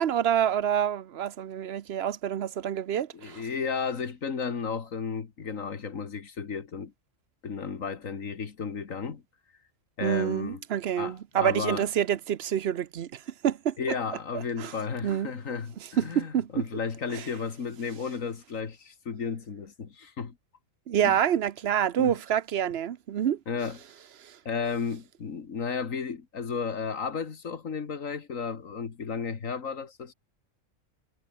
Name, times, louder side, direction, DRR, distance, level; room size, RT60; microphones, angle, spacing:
voice 1, 0.0-3.4 10.0-13.8 14.3-14.7 15.0-15.3 16.0-16.6 17.1-17.2 20.9-23.4 24.2-24.4, right 9 dB, 60° right, 0.9 m, -27 dB
voice 2, 3.1-6.9 7.4-9.2 10.0-10.6 11.0-11.8 13.8-20.4 21.0-21.2 22.0-22.2 23.5-23.8 24.5-30.1, left 5 dB, 90° left, 2.2 m, -33 dB
omnidirectional pair, 1.3 m